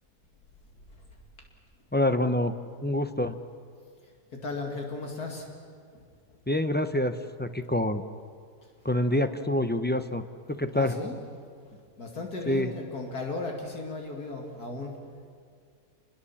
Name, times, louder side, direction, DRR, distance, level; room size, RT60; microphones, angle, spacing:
voice 1, 1.9-2.5 2.8-3.3 6.5-8.0 8.8-10.9 12.4-12.7, left 1 dB, 15° left, 8 dB, 0.4 m, -26 dB
voice 2, 4.3-5.5 5.9-6.0 10.7-11.2 11.7-15.0, left 3 dB, 75° left, 1 dB, 2.9 m, -36 dB
28.0 x 21.5 x 7.2 m, 2.1 s
omnidirectional pair, 1.7 m